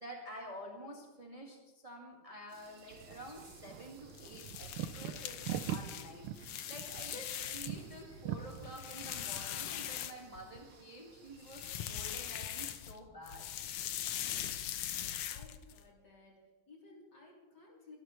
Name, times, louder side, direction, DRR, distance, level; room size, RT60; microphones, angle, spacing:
voice 1, 0.0-13.5, equal, 15° right, -1 dB, 1.7 m, -49 dB
sound 1, 2.5-12.9, right 3 dB, 40° right, 2.2 m, -61 dB
sound 2, 2.9-8.7, right 10 dB, 75° right, 1.6 m, -43 dB
sound 3, 4.1-7.9 8.3-10.6 11.4-13.0 13.2-15.8, left 11 dB, 85° left, 1.8 m, -41 dB
voice 2, 15.3-18.0, left 3 dB, 50° left, -3 dB, 3.9 m, -57 dB
24.0 x 12.5 x 3.2 m, 1.1 s
omnidirectional pair, 2.4 m